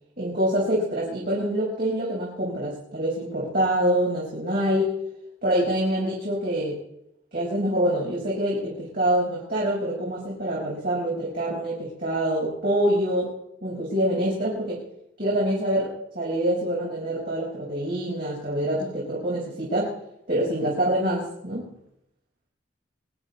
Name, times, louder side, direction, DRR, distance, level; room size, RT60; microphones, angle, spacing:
voice 1, 0.2-4.9 5.4-6.8 7.3-13.3 13.6-14.8 15.2-19.9 20.3-21.7, right 1 dB, 50° right, -6 dB, 5.4 m, -25 dB
24.0 x 11.0 x 4.2 m, 0.77 s
head